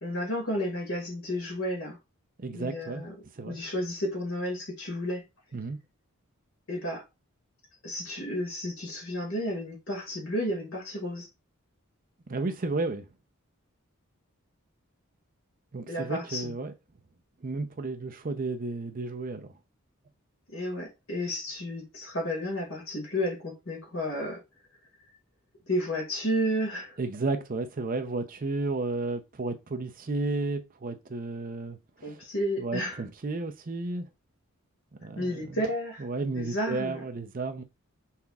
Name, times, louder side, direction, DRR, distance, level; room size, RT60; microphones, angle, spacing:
voice 1, 0.0-2.0 2.5-3.1 3.4-5.2 6.7-7.0 7.8-11.3 15.9-16.5 20.5-24.4 25.7-27.0 32.0-33.0 35.2-36.0 36.3-37.0, equal, 70° left, 2.1 m, -32 dB
voice 2, 2.4-3.0 3.4-3.6 5.5-5.8 12.3-13.1 15.7-16.7 17.4-19.5 27.0-32.2 32.6-34.1 35.0-35.6 36.0-37.6, right 3 dB, 40° right, 0.6 m, -32 dB
5.7 x 3.4 x 2.3 m
head